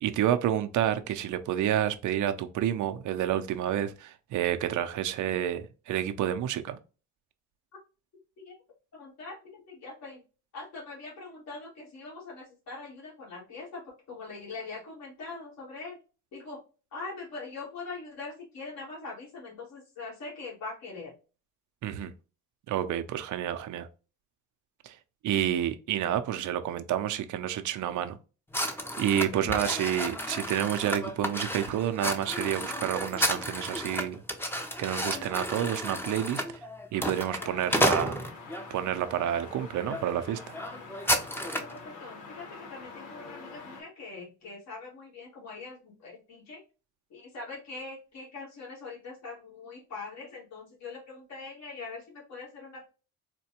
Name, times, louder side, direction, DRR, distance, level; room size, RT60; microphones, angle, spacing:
voice 1, 0.0-6.8 21.8-22.1 22.7-23.9 24.8-25.0 25.2-28.2 29.0-34.2 34.8-36.6 36.9-38.2 38.7-40.4, right 10 dB, 75° right, 0.6 m, -29 dB
voice 2, 8.9-10.2 10.5-16.0 16.3-16.6 16.9-21.1 29.3-29.8 37.4-37.5 41.4-46.6 47.1-52.9, left 3 dB, 65° left, 1.9 m, -42 dB
sound 1, 28.5-38.7 39.3-39.5 39.9-40.0 40.3-41.8, equal, 10° left, 0.7 m, -32 dB
sound 2, 36.9-43.8, left 4 dB, 90° left, 1.2 m, -46 dB
4.2 x 2.2 x 2.8 m
cardioid pair, 90°, 30 cm